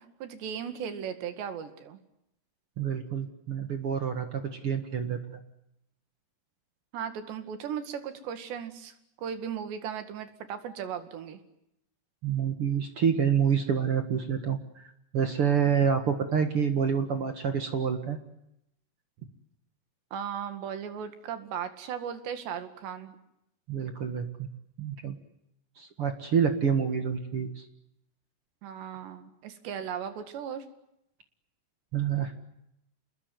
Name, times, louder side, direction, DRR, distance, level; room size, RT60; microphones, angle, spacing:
voice 1, 0.0-2.0 6.9-11.4 20.1-23.2 28.6-30.7, right 8 dB, 90° right, 8 dB, 4.3 m, -37 dB
voice 2, 2.8-5.4 12.2-14.8 15.1-18.2 23.7-24.5 24.8-25.2 25.8-27.6 31.9-32.3, right 7 dB, 50° right, 7 dB, 1.7 m, -27 dB
29.0 x 21.0 x 9.5 m, 0.81 s
omnidirectional pair, 4.8 m